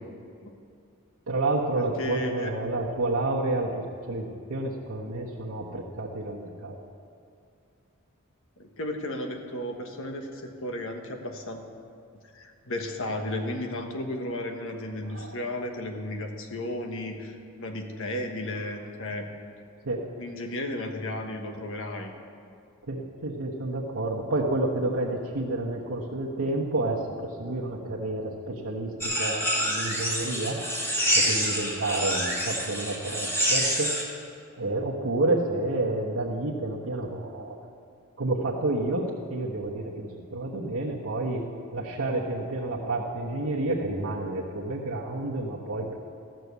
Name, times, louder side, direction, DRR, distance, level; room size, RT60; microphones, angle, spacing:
voice 1, 1.3-6.7 15.0-15.4 19.8-20.1 22.8-30.6 31.1-34.0 34.6-37.6 38.2-41.5 41.7-46.0, right 2 dB, 85° right, -5 dB, 1.3 m, -30 dB
voice 2, 2.0-2.5 8.8-11.6 12.3-19.3 20.2-22.1, left 1 dB, 65° left, 4 dB, 1.3 m, -34 dB
sound 1, 29.0-34.0, equal, 10° left, 2.1 m, -27 dB
14.0 x 6.7 x 8.2 m, 2.4 s
head